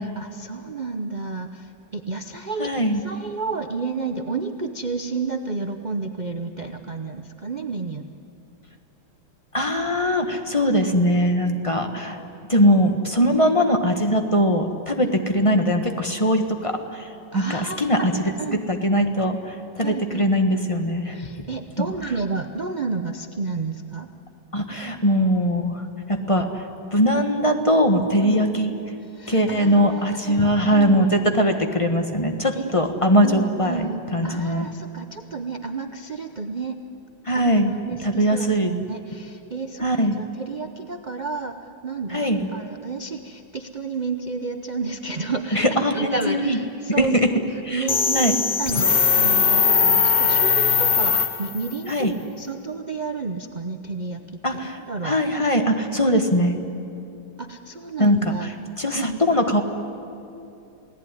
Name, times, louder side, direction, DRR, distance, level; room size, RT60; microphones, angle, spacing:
voice 1, 0.0-8.1 15.0-15.2 17.3-18.6 19.8-20.3 21.1-24.1 28.2-28.4 29.1-31.1 32.5-32.8 33.2-36.8 37.3-37.4 37.9-41.6 41.8-47.4 47.7-54.6 54.9-55.2 57.4-58.5 58.9-59.2, right 4 dB, 55° right, 7 dB, 0.4 m, -31 dB
voice 2, 2.6-3.0 9.5-12.2 12.5-18.1 18.7-21.2 21.8-21.9 24.5-25.8 26.1-26.7 26.9-28.7 29.3-34.7 37.2-37.7 38.0-38.7 39.8-40.2 42.1-42.5 45.5-46.6 47.0-47.1 47.6-47.9 48.1-48.4 51.9-52.1 54.4-56.6 58.0-58.5 58.8-59.6, equal, 20° left, 5 dB, 1.3 m, -21 dB
sound 1, 47.9-51.7, left 6 dB, 65° left, 0.5 m, -19 dB
28.0 x 18.0 x 10.0 m, 2.8 s
omnidirectional pair, 2.1 m